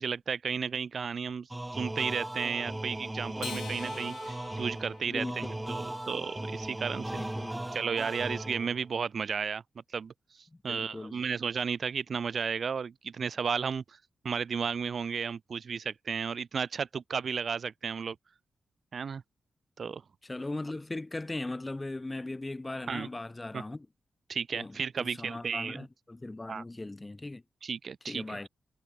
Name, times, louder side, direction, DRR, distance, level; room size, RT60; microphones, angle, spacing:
voice 1, 0.0-1.5 1.7-7.2 7.7-9.6 9.9-10.1 10.6-14.0 14.2-18.2 18.9-19.2 19.8-20.0 22.9-23.1 23.5-23.6 24.3-25.8 26.5-26.6 27.6-28.5, right 6 dB, 55° right, 0.5 m, -33 dB
sound 1, 1.5-8.9, right 1 dB, 10° right, 2.1 m, -37 dB
Acoustic guitar, 3.4-6.1, left 8 dB, 80° left, 1.5 m, -45 dB
voice 2, 5.1-6.0 7.1-7.7 10.7-11.2 20.2-23.9 24.5-27.4 28.1-28.5, left 2 dB, 20° left, 0.5 m, -39 dB
wide cardioid pair, 115°, 0 cm